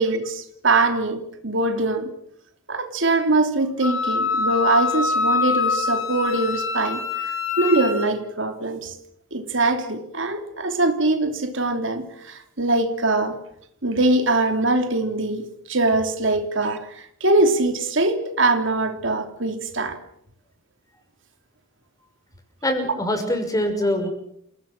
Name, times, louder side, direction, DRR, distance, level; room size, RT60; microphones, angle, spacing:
voice 1, 0.0-2.1 2.7-8.9 9.3-13.4 13.8-20.0, right 2 dB, 65° right, 3.1 m, -22 dB
Wind instrument woodwind instrument, 3.8-8.1, left 4 dB, 85° left, 5.3 m, -24 dB
voice 2, 22.6-24.1, left 1 dB, 20° left, 5.9 m, -23 dB
29.0 x 18.0 x 7.6 m
head